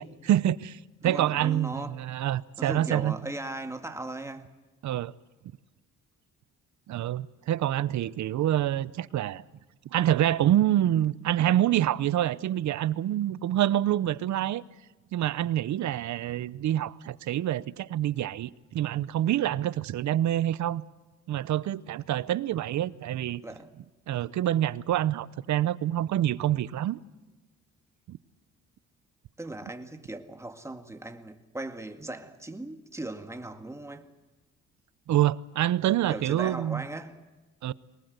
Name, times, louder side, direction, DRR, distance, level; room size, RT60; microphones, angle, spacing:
voice 1, 0.0-3.2 4.8-5.1 6.9-9.4 9.9-14.6 15.1-20.8 21.3-23.4 24.1-27.0 28.1-28.2 35.1-36.8 37.6-37.7, right 12 dB, 70° right, 0.8 m, -26 dB
voice 2, 1.0-2.0 2.6-4.5 23.4-23.7 29.4-34.1 36.1-37.2, right 2 dB, 10° right, 1.9 m, -38 dB
23.0 x 20.0 x 8.1 m
cardioid pair, 90°, 30 cm